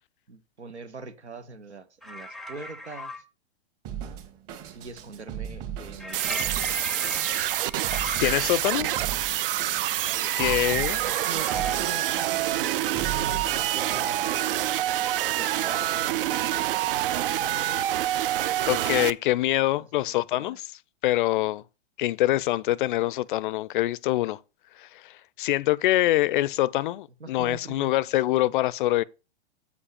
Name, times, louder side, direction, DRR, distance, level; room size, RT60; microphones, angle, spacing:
voice 1, 0.3-3.2 4.7-6.8 9.3-9.5 10.0-10.4 11.2-14.5 15.0-16.9 19.8-20.6 27.2-27.9, right 4 dB, 85° right, 1.0 m, -42 dB
sound 1, 2.0-3.2 6.0-8.5 10.5-11.8, left 2 dB, ahead, 0.6 m, -38 dB
Drum kit, 3.8-14.1, right 9 dB, 40° right, 1.8 m, -38 dB
sound 2, 6.1-19.1, right 13 dB, 55° right, 0.5 m, -27 dB
voice 2, 8.2-8.9 10.4-11.0 18.7-20.7 21.0-21.6 22.0-24.4 24.8-29.0, left 15 dB, 50° left, 0.5 m, -25 dB
8.2 x 5.2 x 4.9 m
figure-of-eight pair, 105°, 33 cm